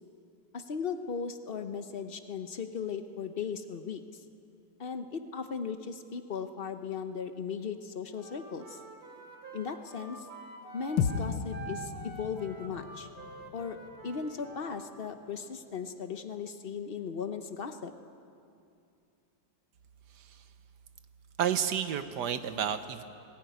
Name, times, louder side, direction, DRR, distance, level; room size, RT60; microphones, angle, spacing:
voice 1, 0.5-4.2 4.8-8.8 9.5-10.3 10.7-13.1 13.5-13.8 14.0-17.9, left 6 dB, 60° left, 8 dB, 0.5 m, -37 dB
Wind instrument woodwind instrument, 8.1-14.9, right 4 dB, 50° right, 2.6 m, -47 dB
sound 1, 11.0-15.3, left 7 dB, 85° left, 1.7 m, -36 dB
voice 2, 21.4-23.0, right 8 dB, 65° right, 10 dB, 1.3 m, -30 dB
19.5 x 16.5 x 9.3 m, 2.6 s
omnidirectional pair, 2.1 m